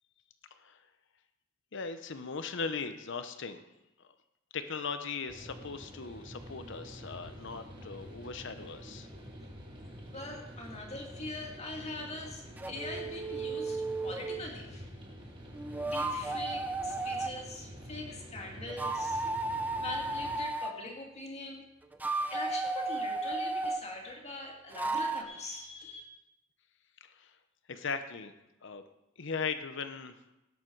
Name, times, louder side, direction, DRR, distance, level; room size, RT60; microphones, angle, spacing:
voice 1, 1.7-3.6 4.5-9.1 27.0-27.3 27.7-28.3 28.6-28.8 29.2-30.1, left 5 dB, 65° left, 10 dB, 0.8 m, -38 dB
sound 1, 5.3-20.4, equal, 25° right, 2.7 m, -48 dB
voice 2, 10.1-14.8 15.8-19.3 19.8-21.6 22.3-26.0, left 2 dB, 35° left, 0 dB, 2.4 m, -42 dB
sound 2, 12.6-14.5 15.5-17.3 18.7-20.7 21.8-23.8 24.7-25.2, right 3 dB, 10° right, 0.7 m, -34 dB
17.5 x 7.3 x 4.6 m, 0.92 s
head